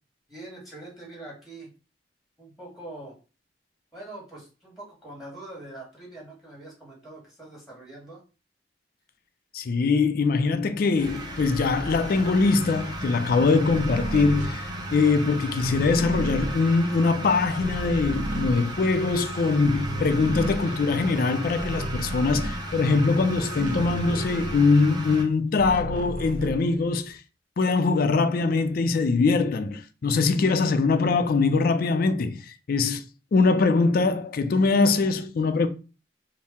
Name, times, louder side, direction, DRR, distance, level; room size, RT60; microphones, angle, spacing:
voice 1, 0.3-1.7 2.4-3.2 3.9-8.2, right 2 dB, ahead, 1.3 m, -43 dB
voice 2, 9.5-27.2 27.6-33.0 33.3-35.7, left 4 dB, 55° left, 0.4 m, -22 dB
sound 1, 10.9-25.2, right 1 dB, 25° right, 0.8 m, -35 dB
sound 2, 13.6-19.2 19.5-25.0 25.3-27.2, right 1 dB, 45° right, 0.4 m, -33 dB
4.3 x 2.0 x 3.5 m
head